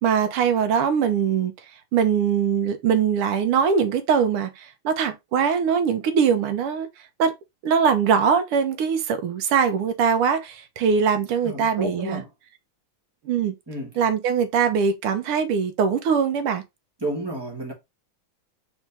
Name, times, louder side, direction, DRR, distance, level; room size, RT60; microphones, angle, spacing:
voice 1, 0.0-1.5 1.9-6.9 7.2-7.3 7.6-12.2 13.2-13.5 14.0-16.6, right 7 dB, 90° right, 1.7 m, -22 dB
voice 2, 11.4-12.3 13.7-13.9 17.0-17.7, right 1 dB, 15° right, 1.3 m, -31 dB
4.3 x 3.5 x 3.4 m
omnidirectional pair, 2.4 m